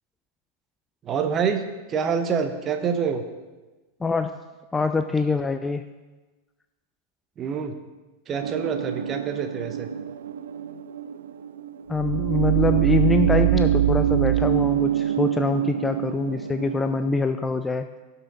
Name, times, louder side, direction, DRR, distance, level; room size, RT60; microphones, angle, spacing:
voice 1, 1.0-3.2 7.4-7.7 8.3-9.9, right 6 dB, 25° right, 7 dB, 1.0 m, -26 dB
voice 2, 4.0-4.4 4.7-5.8 11.9-17.9, left 4 dB, 10° left, 9 dB, 0.4 m, -24 dB
sound 1, 8.4-17.2, right 11 dB, 65° right, 0.5 m, -24 dB
17.0 x 5.8 x 4.0 m, 1.2 s
figure-of-eight pair, 90°, 0 cm